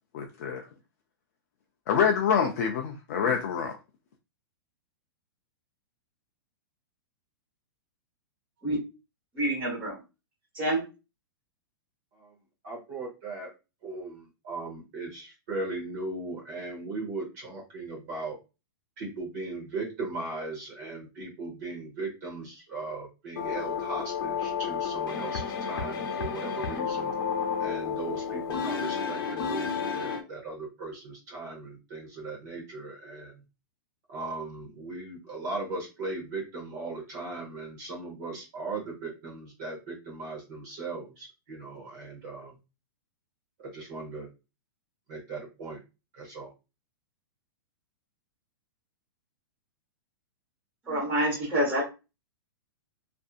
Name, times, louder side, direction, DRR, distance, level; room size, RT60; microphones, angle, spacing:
voice 1, 0.1-0.7 1.9-3.8, left 7 dB, 40° left, 2 dB, 0.4 m, -26 dB
voice 2, 9.3-10.0 10.5-10.8 50.8-51.8, right 1 dB, 10° right, -8 dB, 1.0 m, -27 dB
voice 3, 12.6-13.5 13.8-18.4 19.0-27.1 27.6-33.4 34.1-42.5 43.6-44.3 45.1-45.8 46.1-46.5, right 3 dB, 40° right, -2 dB, 0.9 m, -38 dB
sound 1, 23.4-30.2, left 6 dB, 65° left, 0.7 m, -31 dB
2.6 x 2.5 x 2.3 m, 0.28 s
supercardioid pair, 170°, 13 cm